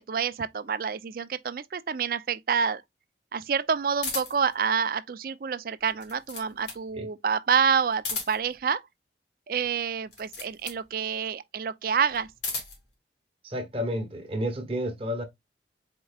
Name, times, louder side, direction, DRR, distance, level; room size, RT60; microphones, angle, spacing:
voice 1, 0.0-2.8 3.3-8.8 9.5-12.3, right 6 dB, 50° right, 0.4 m, -28 dB
sound 1, 4.0-4.5 5.8-6.9 7.9-8.6 10.0-10.9 12.1-12.9, left 3 dB, 75° left, 2.0 m, -35 dB
voice 2, 13.4-15.2, equal, 30° right, 1.0 m, -31 dB
4.5 x 4.5 x 2.3 m
head